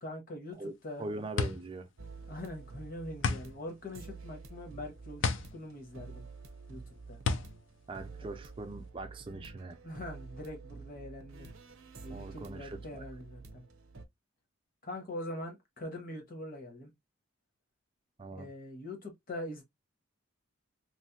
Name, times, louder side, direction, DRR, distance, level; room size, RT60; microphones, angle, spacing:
voice 1, 0.0-1.1 2.3-6.3 6.7-7.2 9.8-11.5 12.0-13.6 14.8-16.9 18.3-19.6, left 1 dB, 40° left, 1.1 m, -43 dB
sound 1, 0.6-8.9, left 4 dB, 60° left, 0.4 m, -35 dB
voice 2, 1.0-1.9 7.9-9.8 12.1-13.0 18.2-18.5, right 2 dB, 25° right, 0.4 m, -41 dB
sound 2, 2.0-14.0, right 4 dB, 70° right, 0.6 m, -49 dB
3.2 x 2.1 x 2.8 m
head